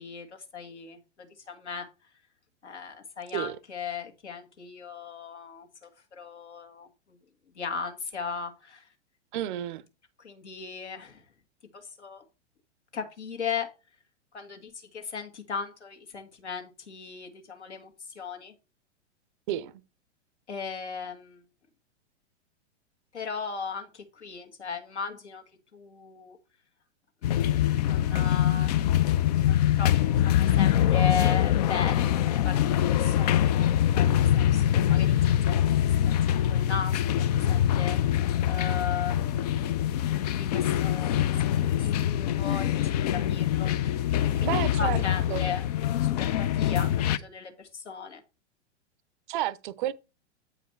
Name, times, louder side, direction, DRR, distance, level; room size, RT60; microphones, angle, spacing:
voice 1, 0.0-1.9 2.6-7.2 7.6-8.9 10.2-11.2 11.7-12.2 12.9-13.7 14.3-18.5 20.5-21.4 23.1-26.4 27.2-27.3 27.8-28.9 29.4-35.6 36.0-36.1 36.5-39.3 40.3-41.2 41.6-44.0 44.4-45.6 46.0-48.2, left 6 dB, 70° left, 1.9 m, -37 dB
voice 2, 9.3-9.8 19.5-19.7 44.4-45.0 45.3-45.5 49.3-49.9, right 12 dB, 45° right, 0.5 m, -31 dB
sound 1, 27.2-47.2, left 11 dB, 35° left, 0.4 m, -24 dB
8.1 x 4.9 x 4.3 m
figure-of-eight pair, 105°, 36 cm